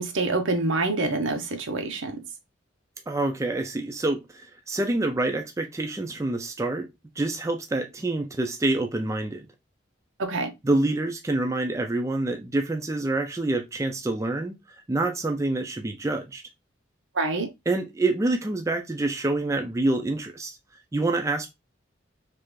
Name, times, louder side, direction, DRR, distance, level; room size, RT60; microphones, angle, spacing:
voice 1, 0.0-2.2 10.2-10.5 17.1-17.5, right 3 dB, 80° right, 0.7 m, -26 dB
voice 2, 3.1-6.9 7.2-9.5 10.6-14.5 14.9-16.4 17.7-20.6 20.9-21.5, right 2 dB, 15° right, 0.3 m, -27 dB
3.3 x 2.4 x 3.0 m
head